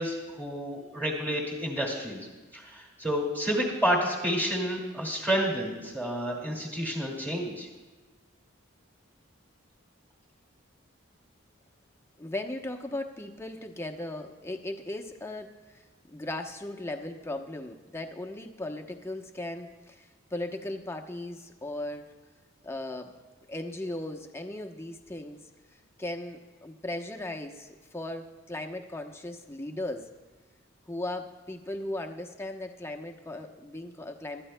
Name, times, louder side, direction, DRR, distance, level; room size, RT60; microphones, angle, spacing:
voice 1, 0.0-2.2 2.5-7.7, equal, 10° right, -3 dB, 2.1 m, -30 dB
voice 2, 12.2-15.8 16.1-22.1 22.6-23.2 23.5-25.4 26.0-30.1 30.9-34.4, left 1 dB, 15° left, 3 dB, 0.9 m, -37 dB
25.0 x 13.0 x 2.2 m, 1.3 s
head